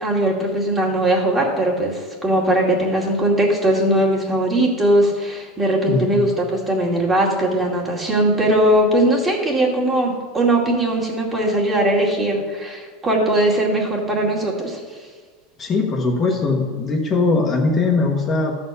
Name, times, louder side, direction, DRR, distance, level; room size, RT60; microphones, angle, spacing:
voice 1, 0.0-14.8, right 1 dB, 15° right, -3 dB, 2.3 m, -19 dB
voice 2, 5.9-6.3 15.6-18.6, left 3 dB, 30° left, 0 dB, 1.3 m, -20 dB
13.0 x 4.4 x 6.9 m, 1.5 s
supercardioid pair, 135°, 0 cm